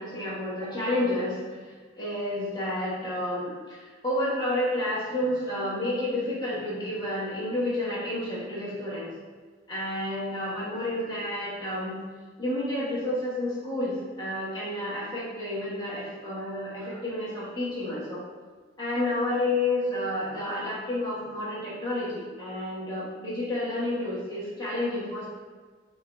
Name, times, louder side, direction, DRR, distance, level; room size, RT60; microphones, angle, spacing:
voice 1, 0.0-9.1 9.7-12.0 12.4-18.2 18.8-25.3, left 1 dB, 20° left, -9 dB, 1.4 m, -30 dB
5.4 x 2.6 x 3.3 m, 1.5 s
head